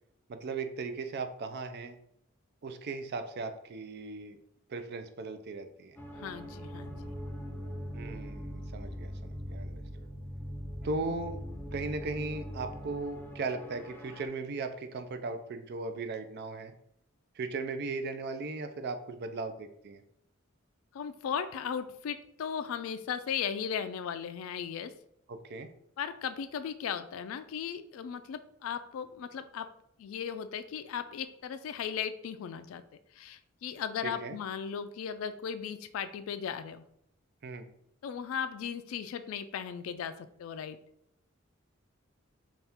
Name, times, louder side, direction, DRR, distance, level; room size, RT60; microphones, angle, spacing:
voice 1, 0.3-2.0 2.6-4.4 4.7-6.0 7.9-10.1 10.8-11.4 11.7-16.7 17.4-20.0 25.3-25.7 34.0-34.4 37.4-37.7, right 3 dB, 55° right, 8 dB, 0.4 m, -37 dB
sound 1, 6.0-14.3, equal, 10° left, 0.5 m, -41 dB
voice 2, 6.1-7.1 20.9-24.9 26.0-29.7 30.0-32.8 33.1-36.8 38.0-40.8, left 7 dB, 75° left, 10 dB, 0.3 m, -37 dB
4.2 x 2.3 x 3.5 m, 0.75 s
head